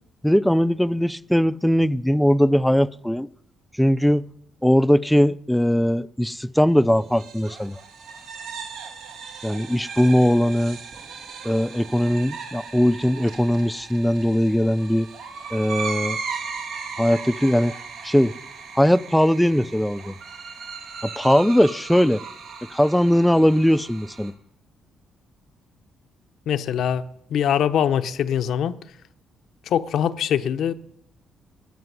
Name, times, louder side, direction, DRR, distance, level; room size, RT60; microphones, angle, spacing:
voice 1, 0.2-3.3 3.8-4.3 4.6-7.8 9.4-10.8 11.4-15.1 15.5-16.2 17.0-17.7 18.0-18.3 18.7-20.2 21.2-22.2 22.7-24.3, equal, 5° left, 0.5 m, -20 dB
sound 1, 7.0-24.3, right 5 dB, 80° right, 2.9 m, -37 dB
voice 2, 26.5-27.0 27.3-28.8 29.7-30.7, left 9 dB, 70° left, 0.8 m, -22 dB
20.0 x 6.9 x 9.6 m
cardioid pair, 90°, 0 cm